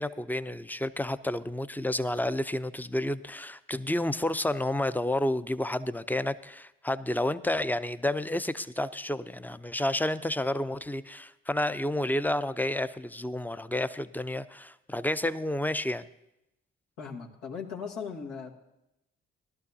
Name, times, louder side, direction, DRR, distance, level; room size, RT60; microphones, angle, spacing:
voice 1, 0.0-16.1, left 1 dB, 5° left, 14 dB, 0.5 m, -30 dB
voice 2, 17.0-18.6, left 6 dB, 85° left, -2 dB, 1.5 m, -38 dB
18.5 x 12.0 x 2.7 m, 0.87 s
hypercardioid pair, 40°, 33 cm